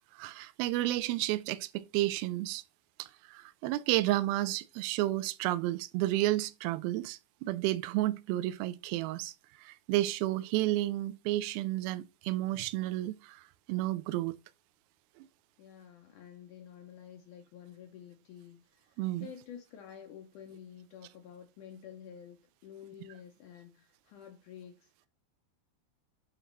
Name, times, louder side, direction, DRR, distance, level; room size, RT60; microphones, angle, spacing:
voice 1, 0.1-2.6 3.0-9.3 9.6-13.4 13.7-14.4 15.2-15.3 19.0-19.3, right 16 dB, 85° right, 2.2 m, -31 dB
voice 2, 15.6-25.1, left 8 dB, 85° left, 1.8 m, -50 dB
9.1 x 3.1 x 3.9 m
omnidirectional pair, 4.7 m